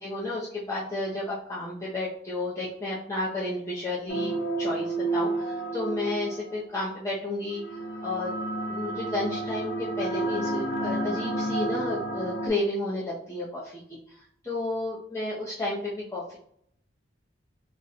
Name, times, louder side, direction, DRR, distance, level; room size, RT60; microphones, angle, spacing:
voice 1, 0.0-7.6 8.0-8.3 8.7-13.8 14.1-16.4, left 2 dB, 15° left, -8 dB, 0.5 m, -32 dB
sound 1, 4.1-6.6 7.5-12.5, right 2 dB, 90° left, 0.8 m, -30 dB
2.5 x 2.2 x 4.0 m, 0.67 s
head